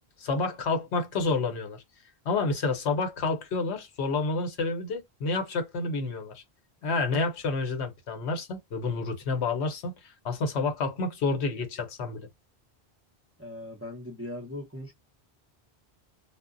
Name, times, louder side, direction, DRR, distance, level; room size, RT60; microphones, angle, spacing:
voice 1, 0.2-1.8 2.2-6.4 6.8-12.3, left 3 dB, 85° left, 1.0 m, -29 dB
voice 2, 13.4-14.9, left 1 dB, 20° right, 0.5 m, -39 dB
2.0 x 2.0 x 3.7 m
omnidirectional pair, 1.1 m